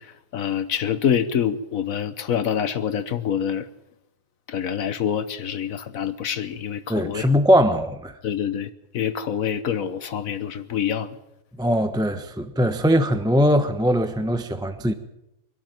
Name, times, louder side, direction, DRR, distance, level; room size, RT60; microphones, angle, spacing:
voice 1, 0.3-3.7 4.5-7.3 8.2-8.7 8.9-11.1, left 8 dB, 80° left, 1.4 m, -26 dB
voice 2, 6.9-8.1 11.6-14.9, equal, 5° right, 0.9 m, -20 dB
24.5 x 12.5 x 9.0 m
omnidirectional pair, 1.4 m